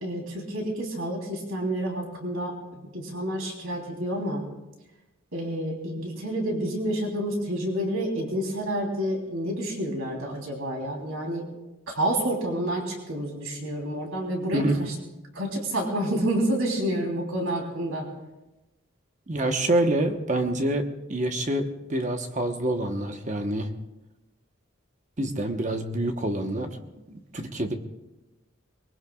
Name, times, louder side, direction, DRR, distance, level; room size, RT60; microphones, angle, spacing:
voice 1, 0.0-4.4 5.3-11.4 11.9-14.9 15.3-18.1, right 1 dB, 80° right, 0 dB, 3.5 m, -29 dB
voice 2, 19.3-23.7 25.2-26.7 27.1-27.7, right 1 dB, 35° right, 5 dB, 1.1 m, -26 dB
23.0 x 21.5 x 2.4 m, 1.0 s
head